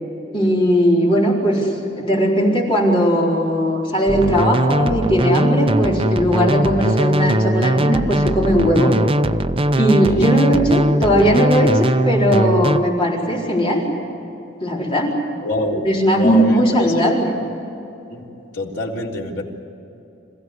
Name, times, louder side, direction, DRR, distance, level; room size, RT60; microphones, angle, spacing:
voice 1, 0.3-9.0 9.8-13.8 14.6-15.2 15.8-17.3, equal, 30° left, -3 dB, 4.4 m, -18 dB
sound 1, 4.1-12.8, right 1 dB, 30° right, 0.7 m, -19 dB
voice 2, 15.4-15.8 16.1-17.0 18.1-18.3 18.5-19.4, left 2 dB, 80° left, -2 dB, 3.6 m, -25 dB
26.5 x 16.0 x 9.7 m, 2.8 s
head